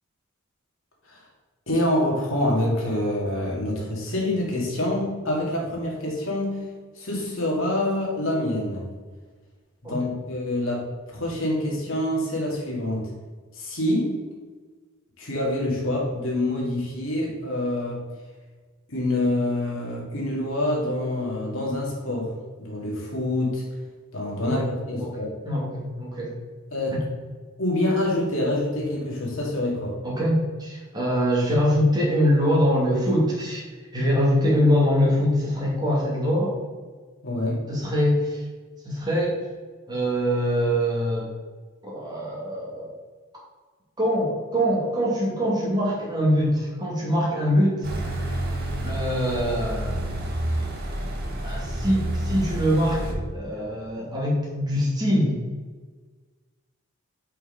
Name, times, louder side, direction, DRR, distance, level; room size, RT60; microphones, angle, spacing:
voice 1, 1.7-6.6 7.0-8.8 9.8-13.1 13.5-14.2 15.2-18.0 18.9-23.6 24.1-25.3 26.7-27.0 27.6-30.0 37.2-37.6, left 1 dB, 65° left, -2 dB, 2.2 m, -26 dB
voice 2, 25.4-26.3 26.9-27.0 30.0-33.6 33.9-36.5 37.7-38.4 38.8-39.4 39.9-41.3 41.8-42.9 44.0-47.9 48.8-50.0 51.4-55.4, equal, 20° right, -5 dB, 2.3 m, -23 dB
sound 1, 47.8-53.1, right 1 dB, 45° right, 1.4 m, -29 dB
5.7 x 5.6 x 5.2 m, 1.4 s
head